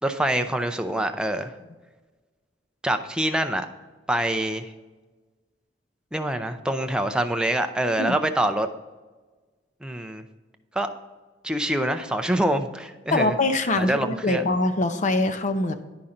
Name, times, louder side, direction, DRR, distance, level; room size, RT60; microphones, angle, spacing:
voice 1, 0.0-1.5 2.8-3.7 4.1-4.7 6.1-8.7 9.8-10.2 10.7-10.9 11.4-13.3 13.8-14.4, right 1 dB, 5° right, 6 dB, 0.5 m, -25 dB
voice 2, 13.1-15.7, left 2 dB, 40° left, 9 dB, 0.6 m, -23 dB
9.7 x 5.7 x 3.8 m, 1.3 s
head